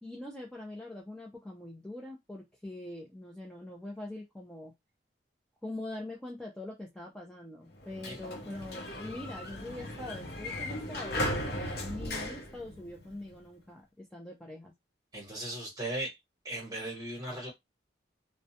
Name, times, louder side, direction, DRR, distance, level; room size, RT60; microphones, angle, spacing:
voice 1, 0.0-4.7 5.6-14.7, left 1 dB, 5° left, 0.4 m, -43 dB
Sliding door, 7.7-13.4, left 1 dB, 55° left, 0.6 m, -37 dB
voice 2, 15.1-16.2 16.4-17.5, right 1 dB, 20° right, 1.1 m, -37 dB
2.3 x 2.1 x 2.7 m
head